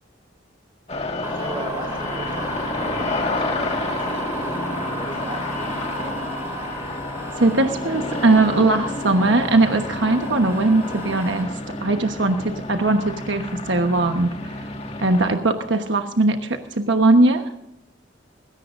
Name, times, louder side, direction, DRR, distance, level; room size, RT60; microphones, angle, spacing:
sound 1, 0.9-15.3, left 2 dB, 35° left, 1.8 m, -30 dB
sound 2, 1.2-11.4, right 2 dB, 15° right, 2.7 m, -35 dB
voice 1, 1.3-6.2, right 1 dB, 30° right, 3 dB, 4.6 m, -37 dB
voice 2, 7.4-11.5 11.8-14.3 15.0-17.4, right 2 dB, 80° right, 5 dB, 1.2 m, -19 dB
20.0 x 17.0 x 2.6 m, 0.82 s
head